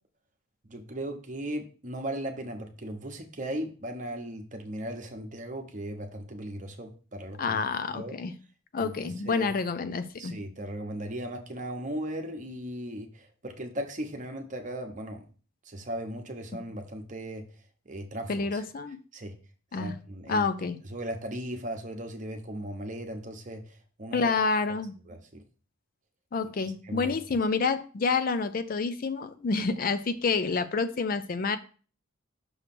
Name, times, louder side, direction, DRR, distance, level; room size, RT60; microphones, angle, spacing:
voice 1, 0.6-7.6 7.9-8.1 8.8-9.5 10.2-15.3 15.6-17.5 17.8-18.6 19.1-19.3 19.8-20.5 20.9-24.3 24.7-24.8 25.1-25.4 26.8-27.2, right 1 dB, 40° right, 4 dB, 1.0 m, -37 dB
voice 2, 7.4-8.3 8.7-10.3 18.3-19.0 19.7-19.9 20.3-20.8 24.1-24.9 26.3-31.6, left 4 dB, 45° left, 12 dB, 0.4 m, -28 dB
6.3 x 3.2 x 5.9 m, 0.39 s
head